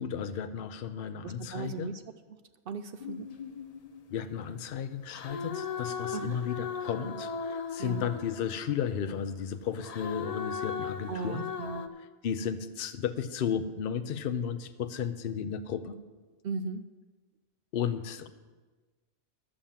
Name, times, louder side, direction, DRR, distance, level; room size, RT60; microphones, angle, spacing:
voice 1, 0.0-1.9 4.1-11.5 12.2-16.0 17.7-18.3, left 8 dB, 55° left, 10 dB, 0.7 m, -34 dB
voice 2, 1.2-2.0 2.7-3.3 6.1-6.4 7.8-8.1 11.1-11.9 16.4-16.8, right 5 dB, 65° right, 9 dB, 0.5 m, -37 dB
sound 1, 3.0-4.5 5.1-8.9 9.8-11.9, left 6 dB, 90° left, 0.3 m, -38 dB
11.5 x 7.1 x 7.3 m, 1.3 s
omnidirectional pair, 1.4 m